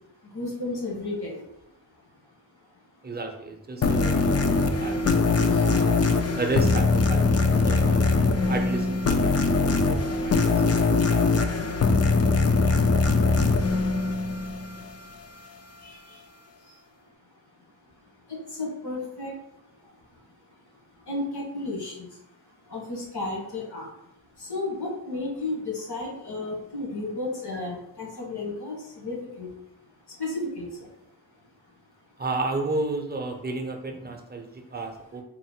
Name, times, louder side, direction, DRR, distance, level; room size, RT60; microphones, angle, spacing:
voice 1, 0.3-1.4 5.5-5.6 15.8-15.9 18.3-19.3 21.1-22.1 22.7-23.9 24.4-29.5 30.2-30.7, left 2 dB, 65° left, -1 dB, 1.3 m, -33 dB
voice 2, 3.0-5.9 6.3-8.0 8.5-11.5 11.8-12.3 32.2-35.2, right 3 dB, 25° right, 3 dB, 0.5 m, -33 dB
sound 1, 3.8-15.0, left 3 dB, 40° left, 0.4 m, -22 dB
3.8 x 2.1 x 4.3 m, 0.82 s
wide cardioid pair, 75°, 42 cm